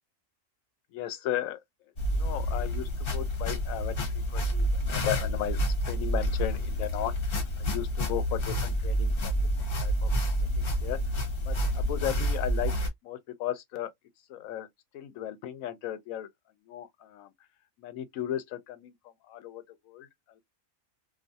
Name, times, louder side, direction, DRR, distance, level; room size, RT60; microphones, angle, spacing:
voice 1, 0.9-1.6 2.1-5.6 5.9-9.4 9.8-10.1 10.6-11.0 11.5-12.7 13.0-13.9 14.3-14.7 14.9-16.3 16.7-17.3 17.8-18.9 19.3-20.1 20.4-20.5, left 12 dB, 85° left, 1.0 m, -35 dB
sound 1, 2.0-12.9, equal, 50° left, 0.9 m, -29 dB
2.4 x 2.3 x 2.6 m
omnidirectional pair, 1.4 m